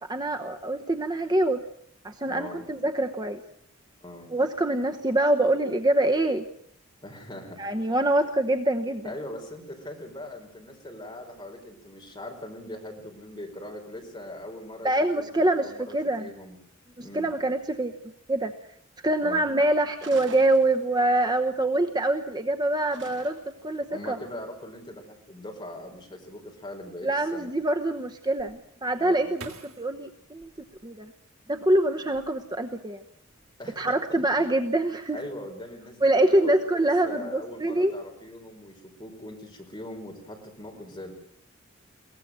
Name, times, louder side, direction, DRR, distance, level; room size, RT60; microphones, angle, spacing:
voice 1, 0.1-1.6 2.0-3.4 4.3-6.5 7.6-9.1 14.8-16.3 17.0-17.9 18.3-18.5 19.0-24.2 27.0-30.5 30.8-31.1 31.5-33.0 33.8-35.2 36.0-37.9, right 1 dB, 20° right, 7 dB, 0.9 m, -25 dB
voice 2, 2.2-2.6 4.0-4.3 7.0-7.6 9.0-16.6 17.0-17.3 19.2-19.5 23.9-27.5 29.0-29.3 33.6-34.0 34.4-34.5 35.1-41.1, left 1 dB, 20° left, 1 dB, 4.9 m, -41 dB
sound 1, 20.0-21.2 22.9-23.7, right 4 dB, 60° right, 2.6 m, -45 dB
sound 2, 28.4-31.5 32.0-32.7 33.1-33.5, right 3 dB, 80° right, 2.9 m, -48 dB
22.0 x 18.5 x 7.7 m, 0.64 s
head